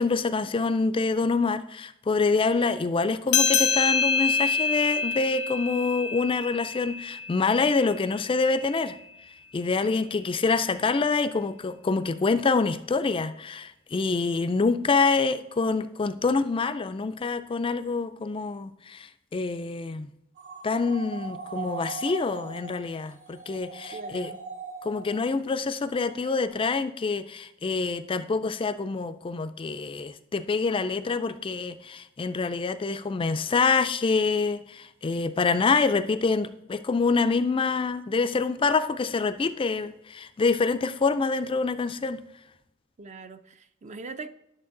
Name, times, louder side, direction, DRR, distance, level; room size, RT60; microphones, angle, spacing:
voice 1, 0.0-9.0 9.5-20.1 20.6-24.3 24.8-42.2, left 4 dB, 25° left, 0.4 m, -26 dB
sound 1, 3.3-8.2, left 5 dB, 85° left, 0.8 m, -26 dB
sound 2, 20.4-25.5 25.9-26.5, right 4 dB, 75° right, 2.0 m, -40 dB
voice 2, 23.9-24.4 43.0-44.3, right 3 dB, 35° right, 0.5 m, -41 dB
11.0 x 6.5 x 3.8 m
head